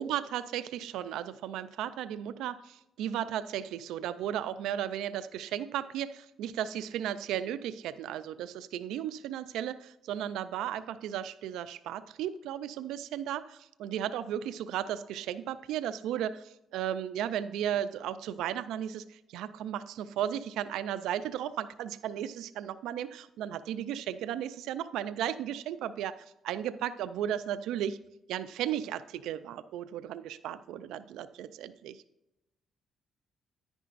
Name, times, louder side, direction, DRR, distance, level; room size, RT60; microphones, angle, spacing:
voice 1, 0.0-26.1 26.4-28.0 28.3-32.0, right 10 dB, 90° right, 13 dB, 0.4 m, -35 dB
10.0 x 9.7 x 2.5 m, 0.90 s
cardioid pair, 90°, 0 cm